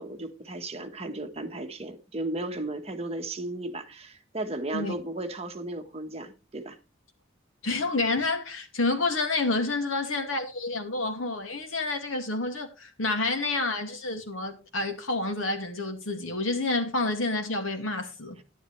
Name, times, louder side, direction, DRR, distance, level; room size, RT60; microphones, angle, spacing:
voice 1, 0.0-6.8, right 2 dB, 30° right, 1.4 m, -35 dB
voice 2, 7.6-18.4, left 2 dB, 85° left, 2.4 m, -29 dB
11.0 x 10.5 x 3.3 m
head